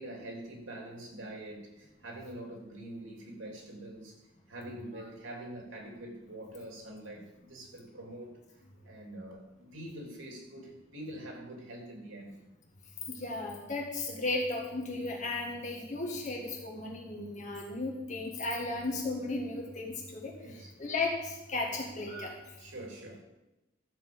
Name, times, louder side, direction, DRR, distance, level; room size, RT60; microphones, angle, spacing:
voice 1, 0.0-4.1 4.5-8.4 8.8-12.4 20.4-20.7 22.6-23.2, right 1 dB, 85° right, 1 dB, 3.2 m, -45 dB
voice 2, 13.1-22.3, left 2 dB, 35° left, -1 dB, 1.8 m, -35 dB
13.0 x 5.9 x 7.9 m, 1.0 s
head